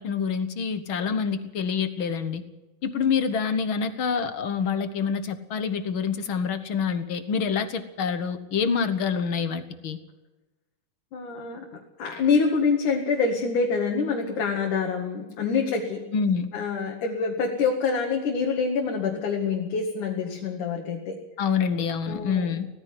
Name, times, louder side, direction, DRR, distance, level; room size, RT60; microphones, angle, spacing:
voice 1, 0.0-2.4 2.8-10.0 16.1-16.5 21.4-22.7, left 6 dB, 55° left, 11 dB, 1.6 m, -26 dB
voice 2, 11.1-16.0 16.5-21.2 22.1-22.5, left 5 dB, 80° left, 0 dB, 3.6 m, -26 dB
18.0 x 15.0 x 9.6 m, 1.1 s
omnidirectional pair, 3.5 m